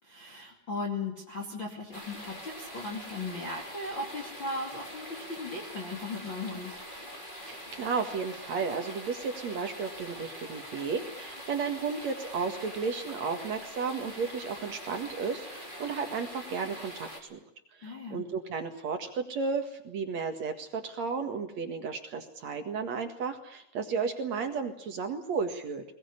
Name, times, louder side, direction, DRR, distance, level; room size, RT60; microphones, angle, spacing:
voice 1, 0.0-6.8 17.8-18.2, left 3 dB, 30° left, 0 dB, 2.5 m, -37 dB
sound 1, 1.9-17.2, equal, 10° left, 3.2 m, -44 dB
voice 2, 7.4-17.4 17.8-25.8, right 5 dB, 50° right, 6 dB, 2.2 m, -33 dB
21.5 x 20.0 x 9.8 m, 0.72 s
omnidirectional pair, 5.4 m